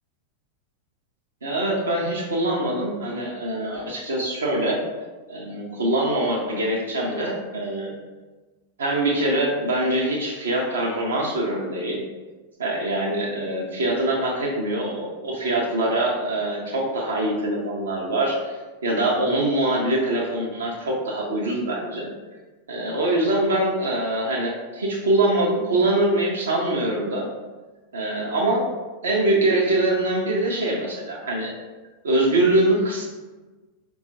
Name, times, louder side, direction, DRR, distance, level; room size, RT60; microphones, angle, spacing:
voice 1, 1.4-4.8 5.3-7.9 8.8-12.0 12.6-18.5 18.8-22.1 22.7-27.3 27.9-28.6 29.0-31.5 32.0-33.1, right 1 dB, 70° right, -2 dB, 0.6 m, -23 dB
4.2 x 2.3 x 2.7 m, 1.2 s
figure-of-eight pair, 90°, 0 cm